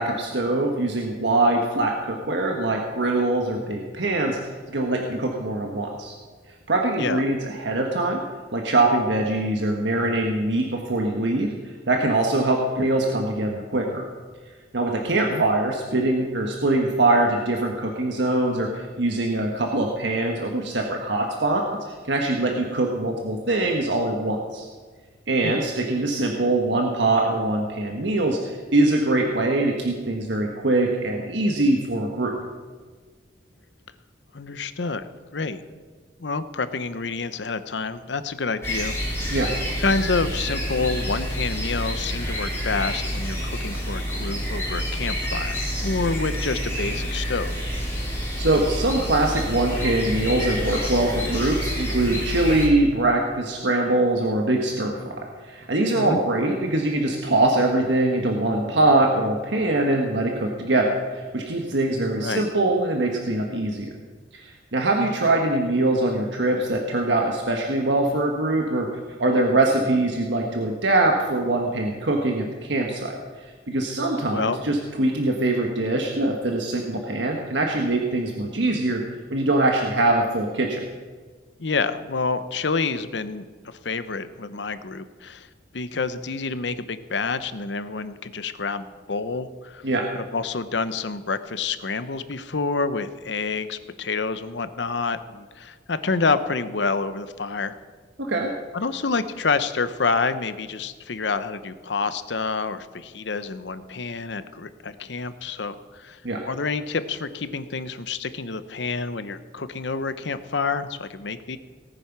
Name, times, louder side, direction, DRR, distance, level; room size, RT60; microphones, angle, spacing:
voice 1, 0.0-6.1 6.7-8.2 8.5-14.0 14.7-21.6 21.9-24.7 25.3-32.3 39.3-39.5 48.4-63.9 64.3-79.0 79.3-80.8 89.8-90.0 98.2-98.5 106.2-106.4, right 2 dB, 80° right, 1 dB, 1.4 m, -23 dB
voice 2, 34.3-35.6 36.2-39.0 39.3-39.5 39.8-47.5 55.9-56.2 62.2-62.4 74.3-74.6 81.6-85.5 85.7-89.8 90.1-97.8 98.7-106.2 106.5-111.6, left 4 dB, 75° left, 13 dB, 0.8 m, -28 dB
sound 1, 38.6-52.7, equal, 15° left, 4.0 m, -28 dB
18.0 x 9.2 x 6.0 m, 1.4 s
head